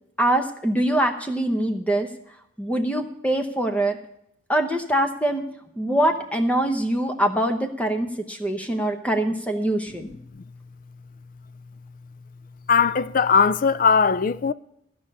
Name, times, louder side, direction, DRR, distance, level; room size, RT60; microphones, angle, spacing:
voice 1, 0.2-2.1 2.6-4.0 4.5-5.4 5.8-10.1, right 1 dB, 5° left, 0.8 m, -23 dB
voice 2, 10.0-10.4 12.7-14.5, left 5 dB, 40° left, 0.3 m, -20 dB
14.5 x 5.4 x 8.5 m
head